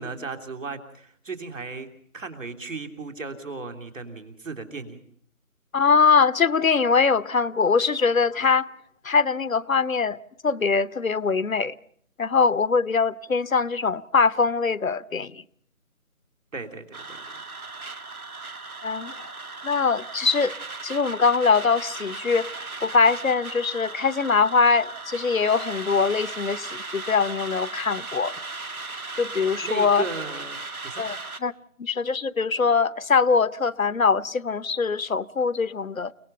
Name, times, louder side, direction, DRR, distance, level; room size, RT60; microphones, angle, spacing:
voice 1, 0.0-1.9 2.1-5.0 16.5-17.4 29.6-31.0, right 4 dB, 60° right, 3.3 m, -35 dB
voice 2, 5.7-8.7 9.0-10.2 10.4-11.7 12.2-15.4 18.8-19.3 19.6-20.5 20.8-28.3 29.2-30.0 31.0-31.2 31.4-31.5 31.8-36.1, left 5 dB, 70° left, 0.8 m, -22 dB
sound 1, 16.9-31.4, right 3 dB, 80° right, 2.0 m, -37 dB
30.0 x 18.5 x 5.6 m
figure-of-eight pair, 165°, 43 cm